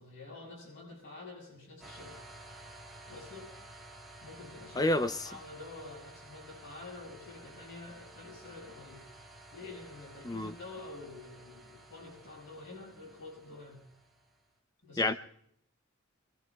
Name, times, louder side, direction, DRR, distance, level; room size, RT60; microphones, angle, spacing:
voice 1, 0.0-2.2 3.1-3.5 4.2-9.1 9.5-13.9 14.8-15.1, left 3 dB, 60° left, -2 dB, 6.4 m, -48 dB
sound 1, 1.8-14.4, right 1 dB, ahead, 2.3 m, -53 dB
voice 2, 4.8-5.1 10.2-10.5 15.0-15.1, left 2 dB, 15° left, 10 dB, 0.6 m, -28 dB
27.0 x 22.0 x 2.4 m, 0.70 s
head